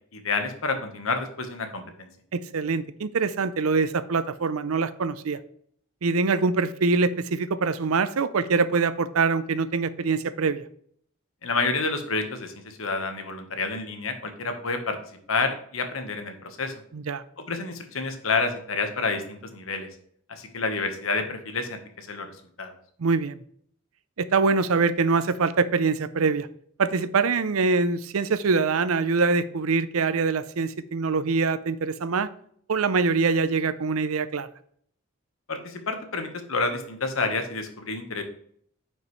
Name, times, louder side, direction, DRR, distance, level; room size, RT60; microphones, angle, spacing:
voice 1, 0.1-2.1 11.4-15.0 15.3-16.7 17.5-19.9 20.3-22.3 22.6-22.7 35.5-38.2, left 3 dB, 70° left, 6 dB, 1.2 m, -29 dB
voice 2, 2.3-5.4 6.0-10.6 16.9-17.2 23.0-23.4 24.2-26.5 26.8-32.3 32.7-34.5, right 4 dB, 85° right, 14 dB, 0.6 m, -24 dB
9.5 x 5.2 x 3.2 m, 0.63 s
head